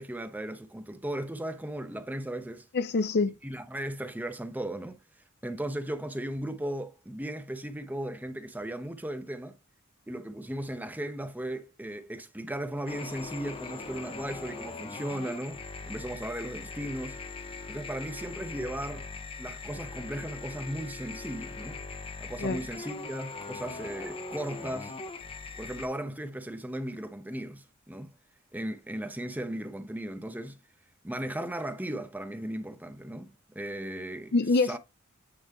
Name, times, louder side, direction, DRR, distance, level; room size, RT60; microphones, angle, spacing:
voice 1, 0.0-2.7 3.4-5.0 5.4-9.6 10.1-17.2 17.7-19.1 19.4-21.8 22.2-24.9 25.6-28.1 28.5-30.6 31.0-34.8, right 1 dB, 10° right, 0.7 m, -36 dB
voice 2, 2.7-3.3 22.4-22.6 34.3-34.8, left 3 dB, 50° left, 0.5 m, -25 dB
sound 1, 12.9-25.9, left 4 dB, 25° left, 0.8 m, -41 dB
8.8 x 3.1 x 3.5 m
head